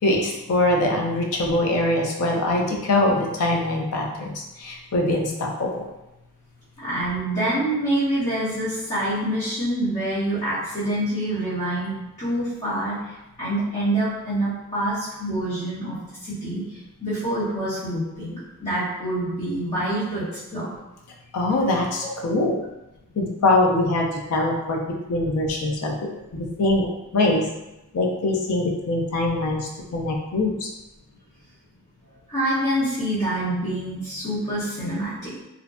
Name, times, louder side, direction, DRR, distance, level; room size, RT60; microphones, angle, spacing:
voice 1, 0.0-5.8 21.3-22.6 23.2-24.8 25.1-26.9 27.1-27.5 27.9-30.7, left 2 dB, 75° left, 0 dB, 0.4 m, -23 dB
voice 2, 6.8-20.7 22.0-22.1 32.3-35.3, right 1 dB, 35° left, -15 dB, 0.9 m, -26 dB
2.5 x 2.1 x 2.4 m, 0.95 s
head